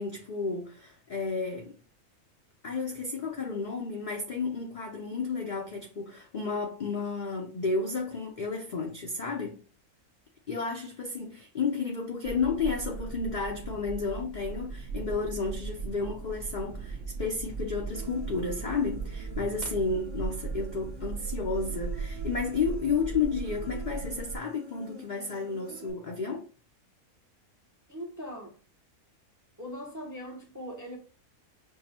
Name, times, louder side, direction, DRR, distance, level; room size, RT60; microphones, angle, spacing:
voice 1, 0.0-1.8 2.6-9.6 10.5-26.4, left 4 dB, 75° left, 0.4 m, -32 dB
sound 1, 12.2-24.4, right 5 dB, 50° right, 0.7 m, -38 dB
Human voice, 17.9-25.9, right 2 dB, 75° right, 1.3 m, -47 dB
voice 2, 27.9-28.6 29.6-31.0, equal, 25° right, 0.4 m, -40 dB
5.8 x 2.0 x 2.8 m
omnidirectional pair, 1.5 m